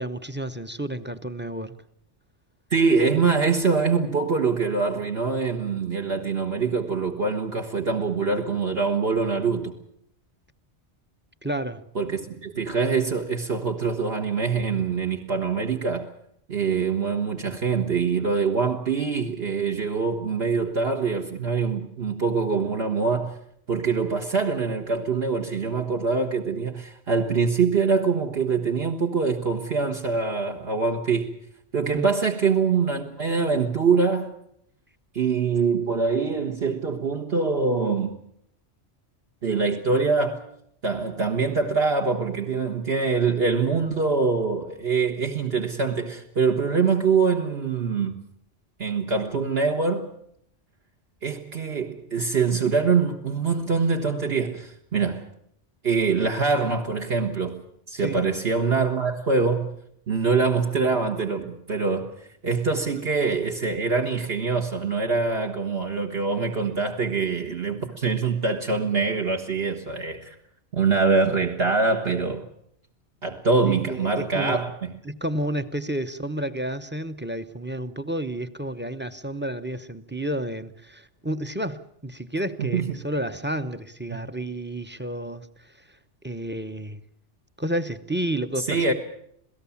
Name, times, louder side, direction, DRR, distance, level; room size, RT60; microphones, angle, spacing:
voice 1, 0.0-1.7 11.4-11.8 31.9-32.1 58.0-58.2 73.7-74.7 75.0-85.5 86.2-87.0 87.6-88.9, right 1 dB, 10° right, 0.7 m, -31 dB
voice 2, 2.7-9.7 11.9-16.1 16.5-23.4 23.7-31.3 31.7-34.3 35.1-38.2 39.4-40.4 40.8-48.1 48.8-50.1 51.2-55.3 55.8-57.6 57.9-59.7 60.1-62.1 62.4-70.3 70.7-72.4 73.2-74.9 82.6-82.9 88.7-88.9, right 4 dB, 60° right, 1.6 m, -24 dB
28.0 x 17.5 x 7.2 m
omnidirectional pair, 1.2 m